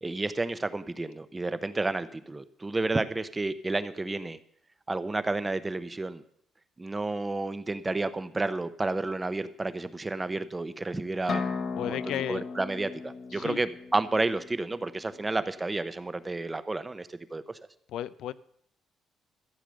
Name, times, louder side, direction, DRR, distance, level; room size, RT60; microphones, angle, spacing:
voice 1, 0.0-4.4 4.9-6.2 6.8-11.4 11.8-17.6, right 2 dB, 20° right, 0.9 m, -31 dB
sound 1, 11.3-15.0, left 5 dB, 50° left, 1.2 m, -36 dB
voice 2, 11.8-12.5 13.3-13.6 17.9-18.3, left 11 dB, 85° left, 0.5 m, -34 dB
14.0 x 8.4 x 6.4 m
cardioid pair, 115°, 0 cm